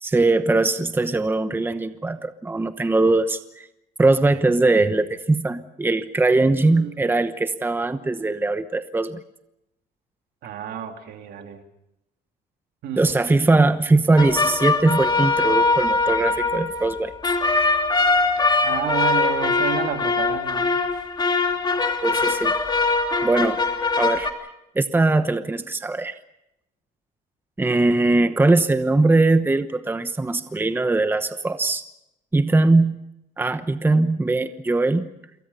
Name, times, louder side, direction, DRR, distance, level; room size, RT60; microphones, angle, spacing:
voice 1, 0.0-3.7 4.0-9.2 13.0-17.1 22.0-22.5 23.2-23.6 23.9-24.3 24.7-26.1 27.6-31.8 32.3-32.9 33.4-35.1, right 2 dB, 10° right, 10 dB, 1.1 m, -20 dB
voice 2, 10.4-11.6 12.8-13.1 18.6-20.8, right 8 dB, 70° right, 5 dB, 2.9 m, -30 dB
sound 1, 14.2-24.3, left 3 dB, 25° left, 2.9 m, -22 dB
28.0 x 23.0 x 5.6 m, 0.85 s
cardioid pair, 110°, 17 cm